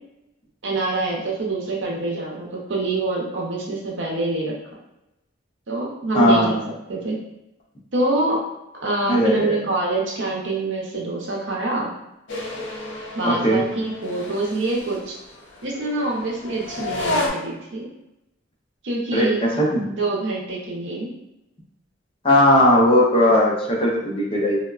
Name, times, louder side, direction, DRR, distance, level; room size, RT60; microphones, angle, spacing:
voice 1, 0.6-4.5 5.7-7.2 7.9-8.4 8.8-11.9 13.1-15.2 15.6-17.9 18.8-19.4 19.9-21.1, right 2 dB, 70° right, -2 dB, 0.7 m, -25 dB
voice 2, 6.1-6.7 9.1-9.6 13.2-13.6 19.1-19.9 22.2-24.6, left 1 dB, 30° left, -3 dB, 0.6 m, -18 dB
sound 1, 12.3-17.3, left 2 dB, 70° left, 0.5 m, -31 dB
3.4 x 2.1 x 2.3 m, 0.89 s
head